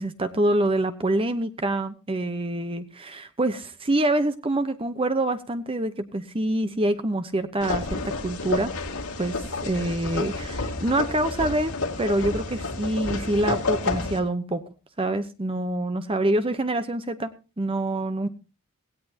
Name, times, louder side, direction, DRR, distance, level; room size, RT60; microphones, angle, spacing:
voice 1, 0.0-8.7 9.2-11.7 12.0-14.6 15.0-17.3 17.6-18.3, right 1 dB, 25° right, 10 dB, 0.9 m, -26 dB
sound 1, 7.6-14.2, left 3 dB, 70° left, 2.7 m, -30 dB
17.0 x 17.0 x 2.9 m, 0.32 s
head